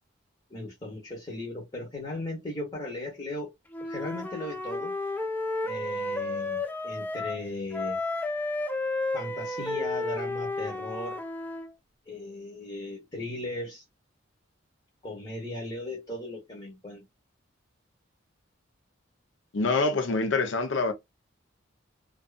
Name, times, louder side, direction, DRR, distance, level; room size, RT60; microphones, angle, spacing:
voice 1, 0.5-3.5 3.8-4.9 5.6-8.0 9.1-11.2 12.1-13.8 15.0-17.0, left 2 dB, 25° left, 0.8 m, -37 dB
Wind instrument woodwind instrument, 3.7-7.4 7.7-11.7, left 2 dB, 10° left, 0.3 m, -32 dB
voice 2, 19.5-20.9, left 3 dB, 70° left, 0.6 m, -25 dB
2.5 x 2.4 x 2.3 m
head